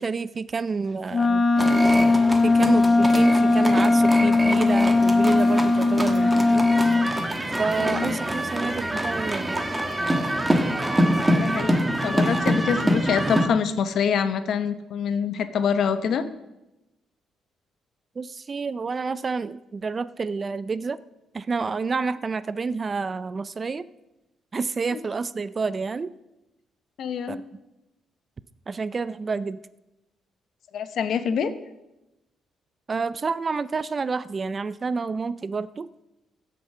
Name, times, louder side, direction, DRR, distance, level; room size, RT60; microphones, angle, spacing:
voice 1, 0.0-1.5 2.4-6.7 7.6-9.7 18.2-21.0 21.3-23.9 24.5-26.1 27.3-27.4 28.7-29.6 32.9-35.9, right 4 dB, 35° right, 17 dB, 0.4 m, -29 dB
Wind instrument woodwind instrument, 1.1-7.1, left 3 dB, 30° left, 0.7 m, -19 dB
sound 1, 1.6-13.5, right 1 dB, 15° right, 1.3 m, -25 dB
voice 2, 7.8-8.2 11.3-16.2 27.0-27.4 30.7-31.5, left 7 dB, 65° left, 11 dB, 0.9 m, -25 dB
15.5 x 6.7 x 5.6 m, 0.95 s
cardioid pair, 90°, 0 cm